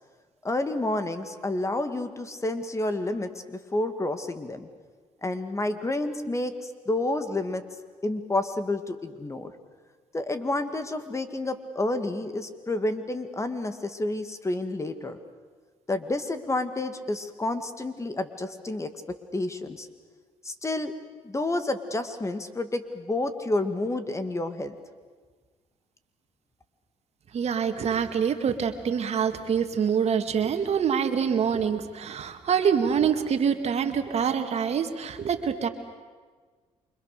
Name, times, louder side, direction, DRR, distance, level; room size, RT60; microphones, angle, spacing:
voice 1, 0.4-4.7 5.2-7.6 8.0-9.5 10.1-15.2 15.9-18.9 19.3-19.9 20.4-20.9 21.2-24.7, left 2 dB, 20° left, 9 dB, 2.3 m, -29 dB
voice 2, 27.3-35.7, right 7 dB, 55° right, 7 dB, 2.2 m, -25 dB
28.5 x 25.0 x 6.8 m, 1.5 s
supercardioid pair, 75°, 13 cm